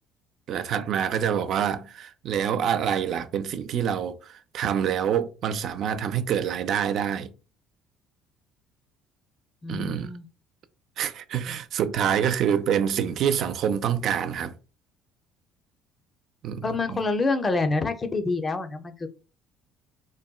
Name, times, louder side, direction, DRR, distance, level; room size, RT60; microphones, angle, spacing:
voice 1, 0.5-7.3 9.7-10.1 11.0-14.5 16.4-17.0, right 8 dB, 60° right, 0.4 m, -26 dB
voice 2, 9.6-10.3 16.6-19.1, left 3 dB, 30° left, 0.6 m, -27 dB
3.9 x 2.1 x 2.3 m
supercardioid pair, 80°, 0 cm